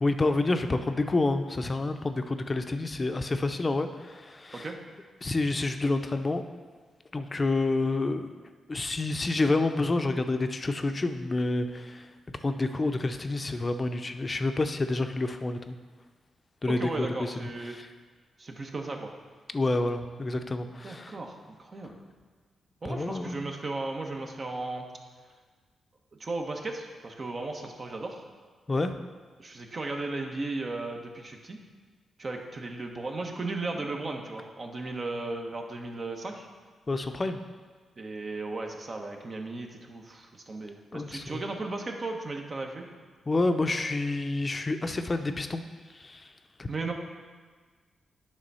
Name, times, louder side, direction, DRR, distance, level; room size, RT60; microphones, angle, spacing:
voice 1, 0.0-4.7 5.2-6.4 7.1-8.3 8.7-12.1 12.4-15.8 16.6-17.9 19.5-21.2 22.9-23.4 28.7-28.9 36.9-37.4 40.9-41.4 43.3-45.6 45.9-46.3 46.6-46.7, left 2 dB, 35° left, 7 dB, 0.6 m, -28 dB
voice 2, 16.8-17.7 18.4-19.1 20.8-22.0 22.8-24.9 26.2-28.2 29.4-31.6 32.2-36.5 38.0-42.9 46.7-46.9, right 2 dB, 45° right, 2 dB, 1.1 m, -35 dB
9.7 x 3.5 x 5.6 m, 1.5 s
supercardioid pair, 55°, 0 cm